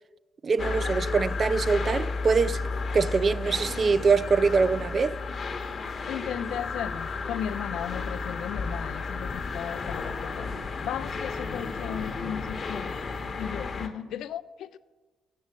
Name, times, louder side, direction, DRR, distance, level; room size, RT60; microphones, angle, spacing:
voice 1, 0.4-2.6 2.9-5.2, right 4 dB, 40° right, 0.3 m, -24 dB
sound 1, 0.6-13.9, left 4 dB, 45° left, 0.9 m, -33 dB
voice 2, 6.1-10.5 10.8-13.0 13.4-14.8, left 10 dB, 80° left, 0.3 m, -36 dB
8.3 x 6.3 x 7.4 m
cardioid pair, 90°, 0 cm